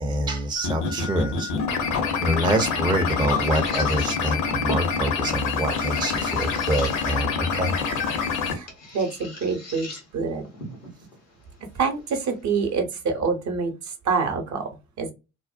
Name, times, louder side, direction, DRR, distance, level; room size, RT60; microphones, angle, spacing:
voice 1, 0.0-1.5 2.2-7.8, right 1 dB, 10° right, 0.5 m, -26 dB
sound 1, 0.6-8.5, left 5 dB, 55° left, 0.7 m, -26 dB
sound 2, 1.8-12.8, left 2 dB, 85° left, 0.8 m, -42 dB
voice 2, 8.9-9.9 10.1-10.4 11.7-13.7 14.0-14.7 15.0-15.1, right 5 dB, 50° right, 0.7 m, -26 dB
2.5 x 2.1 x 2.3 m
figure-of-eight pair, 45°, 36 cm